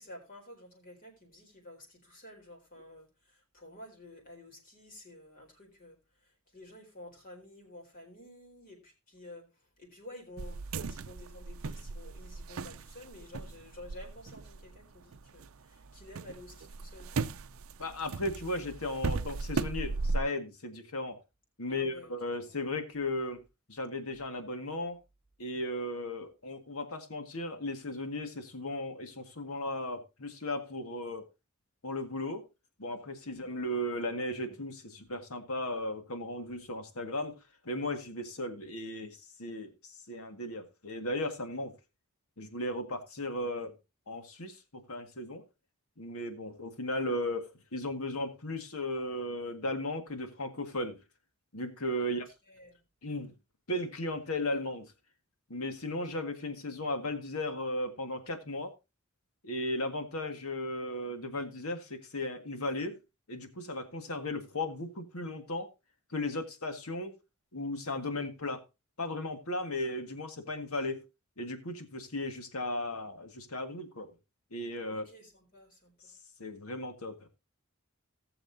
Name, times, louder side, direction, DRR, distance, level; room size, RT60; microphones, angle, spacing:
voice 1, 0.0-17.2 21.7-22.1 22.5-22.6 33.3-33.6 52.1-52.2 52.5-52.8 74.9-76.1, left 1 dB, 40° left, 1 dB, 4.2 m, -51 dB
sound 1, 10.4-15.5 15.8-20.2, right 4 dB, 65° right, 0.5 m, -37 dB
voice 2, 17.8-21.2 21.6-23.4 23.7-25.0 25.4-31.3 31.8-32.4 32.8-37.4 37.6-41.7 42.4-43.7 44.1-45.4 46.0-51.0 51.5-52.3 53.0-53.3 53.7-54.9 55.5-58.7 59.4-63.0 63.3-65.7 66.1-67.2 67.5-68.6 69.0-71.0 71.4-74.1 74.5-75.0 76.4-77.3, left 1 dB, 75° left, 7 dB, 1.8 m, -36 dB
18.5 x 7.0 x 2.7 m, 0.26 s
head